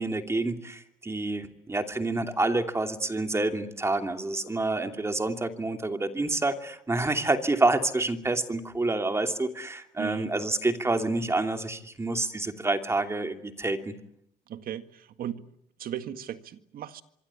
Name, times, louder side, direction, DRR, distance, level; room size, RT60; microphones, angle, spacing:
voice 1, 0.0-13.9, right 2 dB, 15° right, 2.7 m, -28 dB
voice 2, 10.0-10.3 14.5-15.4 15.8-17.0, right 10 dB, 60° right, 1.9 m, -36 dB
25.0 x 24.0 x 8.5 m
cardioid pair, 110°, 17 cm